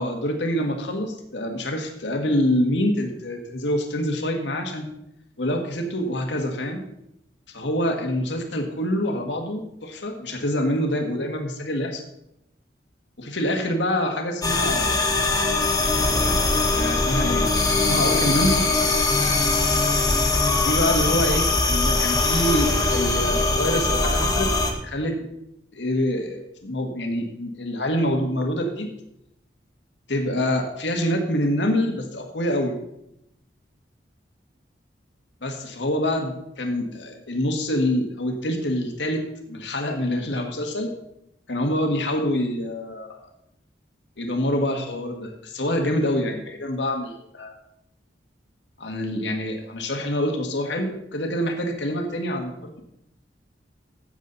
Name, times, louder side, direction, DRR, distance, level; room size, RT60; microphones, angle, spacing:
voice 1, 0.0-4.9 5.4-6.8 7.5-12.0 13.2-15.1 16.7-17.5 17.9-18.7 20.6-25.3 25.7-28.9 30.1-32.8 35.4-40.9 41.5-43.2 44.2-47.5 48.8-52.8, left 1 dB, 90° left, 4 dB, 1.7 m, -26 dB
sound 1, 14.4-24.7, left 3 dB, 20° left, 1.5 m, -21 dB
15.5 x 7.5 x 4.1 m, 0.81 s
head